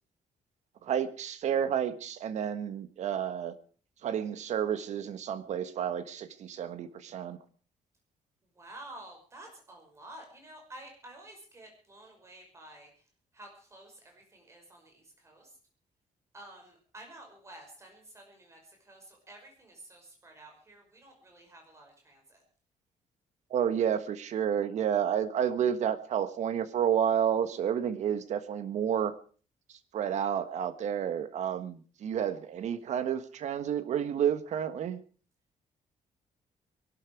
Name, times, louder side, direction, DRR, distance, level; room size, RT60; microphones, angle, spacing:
voice 1, 0.8-3.5 4.0-7.4 23.5-29.1 29.9-35.0, right 9 dB, 60° right, 11 dB, 1.5 m, -30 dB
voice 2, 8.5-13.1 13.3-15.6 16.3-22.4, right 1 dB, 20° right, 2 dB, 5.9 m, -51 dB
22.5 x 12.5 x 4.8 m, 0.41 s
cardioid pair, 165°, 14 cm